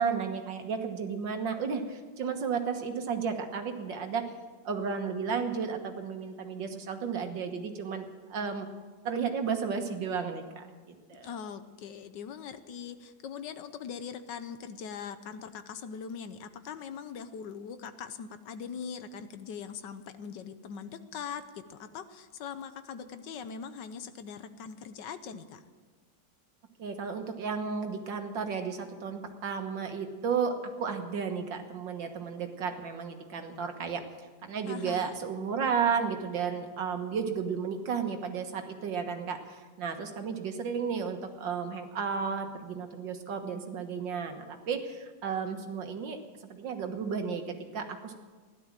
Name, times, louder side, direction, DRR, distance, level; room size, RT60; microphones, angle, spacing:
voice 1, 0.0-4.3 4.6-8.7 9.0-10.7 11.1-11.3 26.8-34.0 34.4-39.4 39.8-46.2 46.5-48.1, right 6 dB, 75° right, 5 dB, 2.1 m, -33 dB
voice 2, 11.2-25.6 34.7-35.1, left 6 dB, 70° left, 11 dB, 1.5 m, -41 dB
16.0 x 12.0 x 7.5 m, 1.4 s
omnidirectional pair, 2.0 m